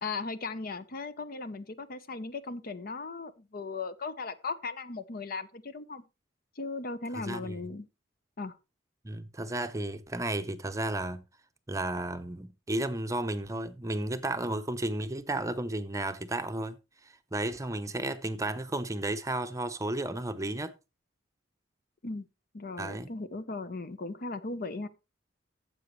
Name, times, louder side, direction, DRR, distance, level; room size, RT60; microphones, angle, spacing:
voice 1, 0.0-6.0 6.6-7.9 8.4-8.6 22.0-22.3 22.5-24.9, left 3 dB, 50° left, 0.8 m, -37 dB
voice 2, 7.2-7.5 9.0-11.2 11.7-16.8 17.3-20.7 22.8-23.1, right 1 dB, 15° right, 0.7 m, -33 dB
13.0 x 7.7 x 3.1 m
head